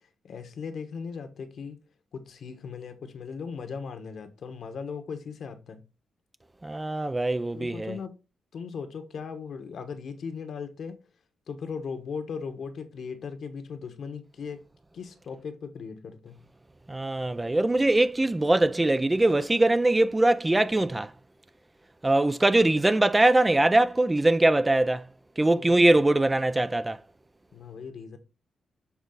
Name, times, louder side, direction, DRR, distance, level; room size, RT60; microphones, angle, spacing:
voice 1, 0.2-1.8 2.1-5.8 7.5-8.1 8.5-11.0 11.5-14.6 14.9-16.4 25.6-25.7 27.5-28.2, left 5 dB, 60° left, 1.3 m, -38 dB
voice 2, 6.6-8.0 16.9-21.1 22.0-25.0 25.4-27.0, right 2 dB, 15° right, 0.3 m, -22 dB
7.2 x 3.7 x 3.9 m
wide cardioid pair, 140°, 0 cm